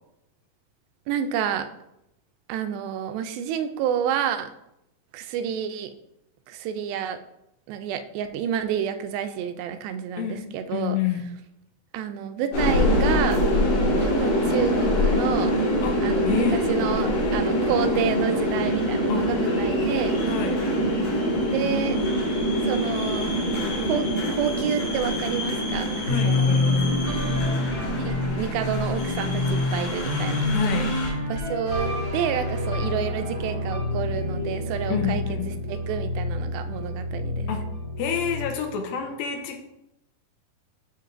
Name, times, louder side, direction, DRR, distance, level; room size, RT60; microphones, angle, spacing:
voice 1, 1.1-1.7 2.5-4.5 5.1-5.9 6.5-7.2 7.7-11.0 11.9-13.4 14.0-15.5 16.0-20.1 21.5-22.0 22.6-23.3 23.8-24.1 24.4-26.6 27.9-30.5 31.3-35.2 35.7-37.5, right 8 dB, 90° right, 8 dB, 2.4 m, -29 dB
voice 2, 10.2-11.2 15.8-16.0 16.2-16.6 19.1-19.2 20.2-20.6 26.1-27.0 30.5-30.9 34.9-35.5 37.5-37.6 38.0-39.6, left 8 dB, 90° left, 4 dB, 2.6 m, -28 dB
sound 1, 12.5-31.1, equal, 65° left, 3.6 m, -25 dB
sound 2, 26.1-35.9, left 2 dB, 20° left, 1.1 m, -27 dB
sound 3, 31.6-38.5, left 1 dB, 45° right, 1.4 m, -30 dB
9.4 x 4.6 x 2.6 m, 0.83 s
omnidirectional pair, 4.2 m